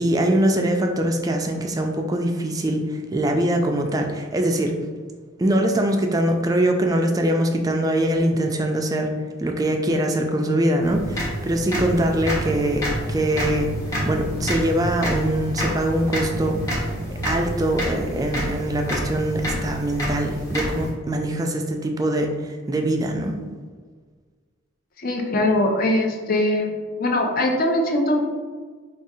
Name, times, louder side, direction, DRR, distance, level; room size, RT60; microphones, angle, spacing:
voice 1, 0.0-4.8 5.4-9.1 9.4-13.7 14.1-16.6 17.2-23.4, right 1 dB, 20° right, 3 dB, 0.3 m, -23 dB
sound 1, 10.8-20.9, equal, 15° left, 1.0 m, -28 dB
voice 2, 25.0-26.7 27.0-28.2, left 1 dB, 45° left, 2 dB, 0.5 m, -21 dB
4.8 x 2.3 x 2.7 m, 1.5 s
head